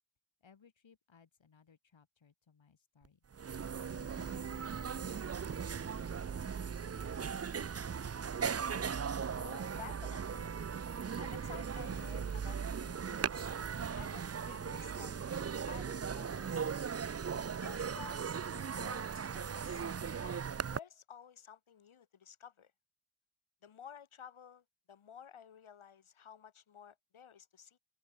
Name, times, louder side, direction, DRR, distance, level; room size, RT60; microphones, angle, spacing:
voice 1, 0.4-3.2 3.9-6.2 6.5-7.4, left 6 dB, 70° left, 4.7 m, -64 dB
sound 1, 3.0-3.1 3.3-20.8, right 6 dB, 30° right, 0.6 m, -38 dB
voice 2, 9.4-10.6 11.2-13.5 14.0-15.2 15.7-16.6 17.6-18.2 18.5-19.8 20.2-22.7 23.6-27.8, left 8 dB, 85° left, 3.3 m, -53 dB
cardioid pair, 45°, 48 cm